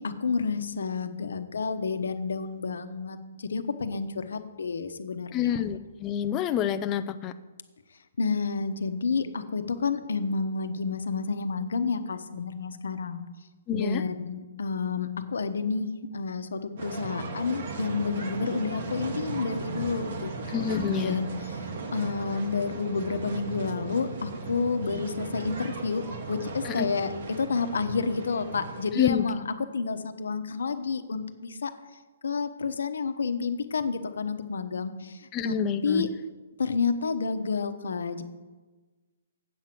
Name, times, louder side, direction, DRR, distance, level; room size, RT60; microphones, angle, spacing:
voice 1, 0.0-5.6 8.2-13.2 13.7-21.6 21.9-31.7 32.2-35.6 35.8-36.1 36.6-38.2, left 5 dB, 80° left, 9 dB, 0.9 m, -30 dB
voice 2, 5.3-7.3 13.7-14.0 20.5-21.2 26.8-26.9 29.0-29.2 35.3-36.1, left 9 dB, 20° left, 8 dB, 0.4 m, -28 dB
sound 1, 16.8-28.9, right 4 dB, 45° right, 1.2 m, -37 dB
8.1 x 7.6 x 6.0 m, 1.3 s
hypercardioid pair, 165°, 0 cm